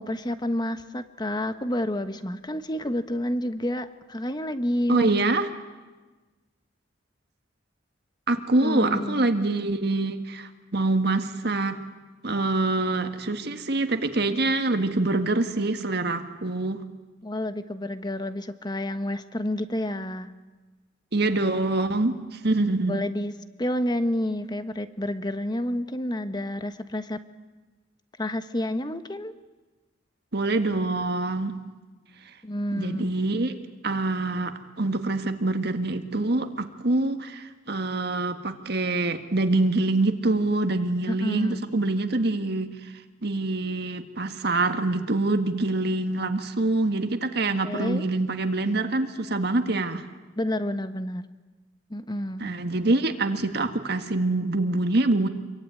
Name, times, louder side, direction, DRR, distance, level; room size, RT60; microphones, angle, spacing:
voice 1, 0.0-5.1 8.6-9.3 17.2-20.3 22.8-23.3 23.6-27.2 28.2-29.3 32.4-33.2 41.1-41.6 47.6-48.0 50.4-51.2 51.9-52.5, left 1 dB, 20° left, 10 dB, 1.2 m, -29 dB
voice 2, 4.9-5.5 8.3-11.8 12.2-16.8 21.1-23.0 30.3-31.6 32.7-33.6 33.8-42.9 43.2-50.1 52.4-55.3, right 2 dB, 55° right, 7 dB, 1.7 m, -25 dB
27.0 x 23.0 x 9.4 m, 1.2 s
head